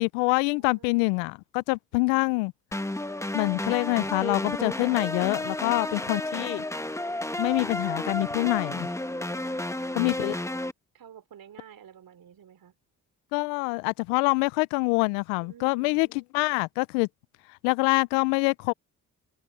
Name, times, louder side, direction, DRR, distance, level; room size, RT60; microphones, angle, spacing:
voice 1, 0.0-2.5 3.3-6.6 7.4-8.9 9.9-10.4 13.3-17.1 17.6-18.7, left 29 dB, 80° left, 0.7 m, -25 dB
voice 2, 0.5-1.0 1.9-2.5 5.5-6.4 9.0-10.4 10.9-12.7 15.4-16.1, right 9 dB, 60° right, 4.3 m, -53 dB
sound 1, 2.7-10.7, left 1 dB, 5° left, 1.3 m, -32 dB
open air
hypercardioid pair, 45°, 40 cm